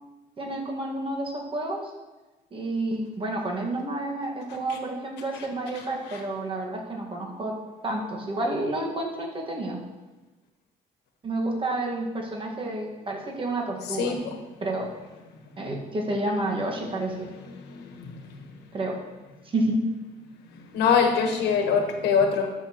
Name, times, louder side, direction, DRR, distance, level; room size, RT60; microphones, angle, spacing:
voice 1, 0.4-1.9 2.5-7.5 7.8-9.8 11.2-14.1 14.6-14.9 15.6-17.3 18.7-19.0 19.4-19.8, right 2 dB, 30° right, 0 dB, 1.7 m, -30 dB
voice 2, 14.0-14.4 17.5-18.1 20.5-22.5, left 6 dB, 80° left, 3 dB, 1.3 m, -24 dB
12.5 x 6.2 x 3.0 m, 1.2 s
cardioid pair, 110°, 17 cm